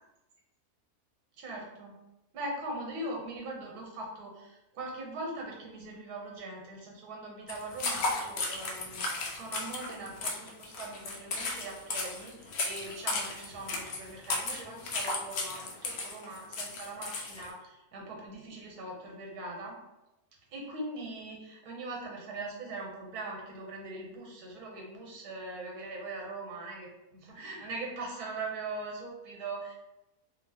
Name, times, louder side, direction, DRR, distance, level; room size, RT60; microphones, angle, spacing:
voice 1, 1.4-1.9 2.3-19.8 20.5-29.7, right 2 dB, 90° right, -1 dB, 1.3 m, -41 dB
sound 1, 7.5-17.5, left 3 dB, 70° left, 0.6 m, -35 dB
2.8 x 2.6 x 2.7 m, 0.93 s
omnidirectional pair, 1.6 m